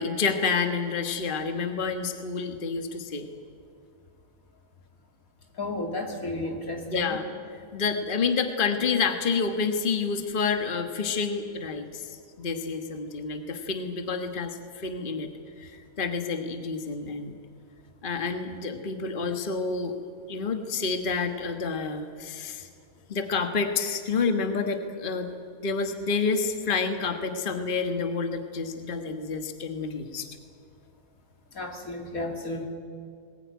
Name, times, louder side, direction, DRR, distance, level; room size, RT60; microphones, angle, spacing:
voice 1, 0.0-3.3 6.9-7.2 7.7-15.3 15.6-17.3 18.0-20.0 20.3-22.7 23.1-25.3 25.6-30.3, left 5 dB, 40° left, 6 dB, 1.5 m, -29 dB
voice 2, 5.6-7.2 31.5-32.7, left 2 dB, 80° left, 2 dB, 3.1 m, -32 dB
20.5 x 19.0 x 9.4 m, 2.3 s
omnidirectional pair, 1.5 m